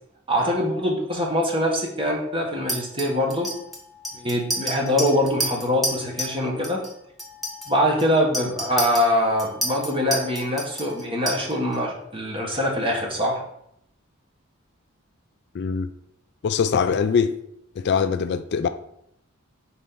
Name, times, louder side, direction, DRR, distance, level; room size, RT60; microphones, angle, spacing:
voice 1, 0.3-3.5 4.1-6.8 7.7-13.4, equal, 25° right, 1.3 m, -23 dB
Chink clink, 2.7-6.4 6.6-6.9 7.2-11.7, right 1 dB, ahead, 1.2 m, -30 dB
voice 2, 15.5-15.9 16.4-17.4 17.8-18.7, left 6 dB, 55° left, 0.3 m, -22 dB
4.4 x 4.3 x 5.5 m
head